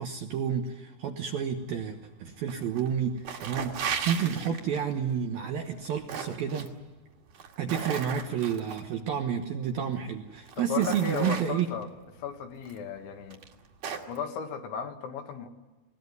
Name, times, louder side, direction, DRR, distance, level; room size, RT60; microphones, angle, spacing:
voice 1, 0.0-6.7 7.6-11.7, right 8 dB, 70° right, 4 dB, 2.4 m, -30 dB
sound 1, 2.5-2.9 3.2-4.9 5.7-6.7 7.3-8.8 9.8-9.9 10.4-11.8 12.7-12.8 13.3-14.2, right 7 dB, 50° right, 3.0 m, -36 dB
voice 2, 10.6-11.9 12.2-13.4 14.1-15.5, left 7 dB, 70° left, 5 dB, 3.9 m, -35 dB
22.0 x 19.5 x 9.5 m, 1.2 s
omnidirectional pair, 5.7 m